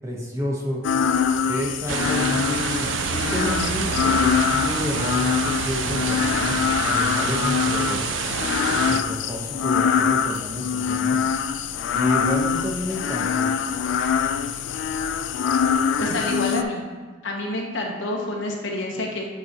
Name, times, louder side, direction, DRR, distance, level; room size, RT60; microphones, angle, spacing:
voice 1, 0.0-0.8 1.4-8.1 8.7-11.2 11.9-13.5, left 1 dB, 15° right, -3 dB, 1.0 m, -30 dB
sound 1, 0.8-16.6, left 7 dB, 65° left, 0.3 m, -24 dB
sound 2, 1.9-9.0, right 8 dB, 75° right, 0.3 m, -28 dB
voice 2, 16.0-16.8 17.2-19.3, left 1 dB, 90° left, -1 dB, 1.1 m, -28 dB
8.5 x 3.9 x 3.0 m, 1.5 s
head